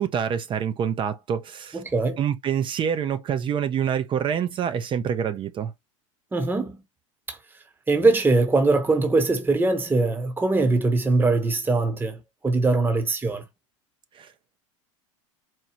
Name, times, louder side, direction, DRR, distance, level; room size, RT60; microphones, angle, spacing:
voice 1, 0.0-1.8 2.2-5.7 14.1-14.3, right 8 dB, 30° right, 0.5 m, -26 dB
voice 2, 1.7-2.2 6.3-6.8 7.3-7.4 7.9-12.2 12.4-13.4, right 3 dB, 10° right, 0.9 m, -22 dB
4.4 x 2.3 x 2.8 m
hypercardioid pair, 90°, 17 cm